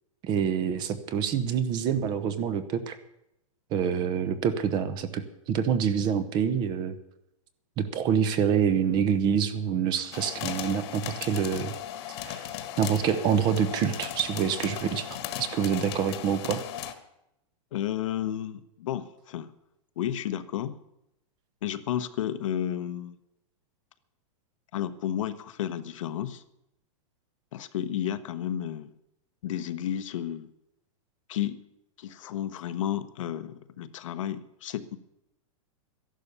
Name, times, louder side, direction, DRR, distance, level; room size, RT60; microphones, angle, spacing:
voice 1, 0.2-3.0 3.7-7.0 7.8-11.7 12.2-12.4 12.8-16.6, right 7 dB, 25° right, 12 dB, 0.9 m, -26 dB
sound 1, 10.1-16.9, left 11 dB, 50° left, 1.5 m, -37 dB
voice 2, 17.7-19.5 20.0-20.8 21.6-23.2 24.7-26.4 27.5-28.9 29.4-30.5 31.3-31.6 32.0-35.0, left 11 dB, 65° left, 10 dB, 1.1 m, -32 dB
13.5 x 11.5 x 6.8 m, 0.83 s
supercardioid pair, 165°, 18 cm